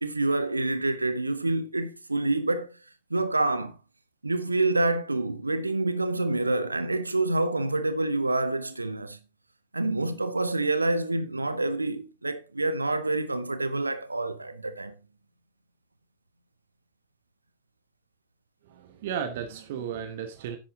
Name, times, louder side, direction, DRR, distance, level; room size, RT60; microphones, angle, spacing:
voice 1, 0.0-2.8 3.1-3.8 4.2-9.2 9.7-14.9, right 2 dB, 80° right, 0.7 m, -27 dB
voice 2, 18.7-20.6, right 8 dB, 55° right, 1.2 m, -34 dB
10.5 x 8.8 x 3.8 m
figure-of-eight pair, 90°, 0 cm